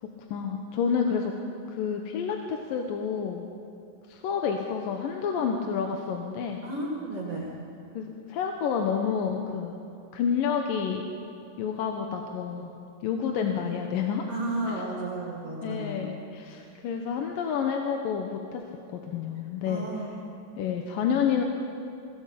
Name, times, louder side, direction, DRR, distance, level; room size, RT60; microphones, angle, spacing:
voice 1, 0.0-1.4 1.7-3.5 4.1-6.7 8.0-9.8 10.1-11.1 11.6-12.7 13.0-14.3 14.6-14.8 15.6-18.7 18.9-19.9 20.6-21.4, left 7 dB, 80° left, 3 dB, 2.9 m, -29 dB
voice 2, 6.6-7.5 14.3-16.1 19.7-20.2, right 2 dB, 45° right, -3 dB, 3.4 m, -33 dB
21.5 x 17.5 x 8.5 m, 2.7 s
omnidirectional pair, 3.9 m